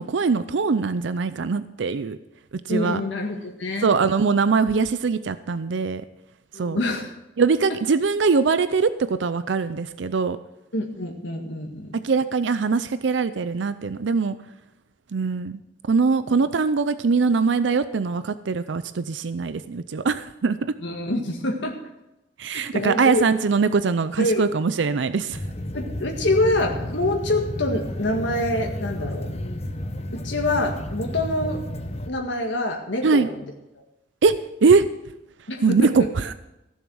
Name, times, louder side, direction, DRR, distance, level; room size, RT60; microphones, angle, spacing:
voice 1, 0.0-2.2 2.7-3.0 3.8-6.0 6.5-6.8 7.4-10.4 12.0-14.4 15.1-15.6 15.9-20.8 22.4-25.4 33.0-33.3 34.2-34.9 35.6-36.3, right 4 dB, 80° right, 13 dB, 0.5 m, -22 dB
voice 2, 2.7-3.9 6.5-7.1 10.7-12.0 20.8-21.8 22.5-23.2 24.2-24.5 25.7-29.3 30.1-31.6 32.1-33.4 35.5-35.9, left 1 dB, 85° left, 1 dB, 1.8 m, -26 dB
Aeroplane Cabin, 25.3-32.1, left 1 dB, 35° left, 1.0 m, -32 dB
15.5 x 7.2 x 6.3 m, 0.94 s
head